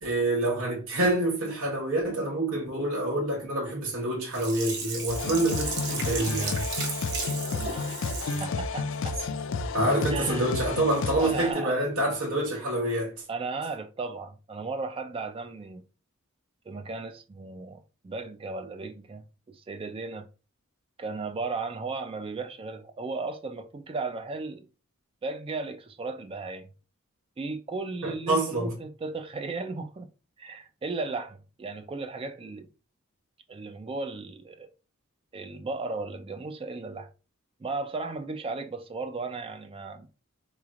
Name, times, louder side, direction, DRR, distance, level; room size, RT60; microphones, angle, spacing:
voice 1, 0.0-6.6 9.7-13.1 28.0-28.7, right 1 dB, 85° right, 1.1 m, -27 dB
Sink (filling or washing), 4.3-8.5 9.0-9.1, right 4 dB, 55° right, 1.1 m, -34 dB
sound 1, 5.1-11.5, left 4 dB, 60° left, 0.4 m, -32 dB
voice 2, 7.5-7.9 8.4-9.2 10.1-10.5 11.2-11.9 12.5-12.6 13.3-15.8 16.7-19.2 19.5-20.3 21.0-24.7 25.2-26.7 27.4-30.1 30.4-32.7 33.5-34.7 35.3-37.1 37.6-40.1, right 3 dB, 25° right, 0.3 m, -35 dB
4.0 x 3.1 x 2.4 m
head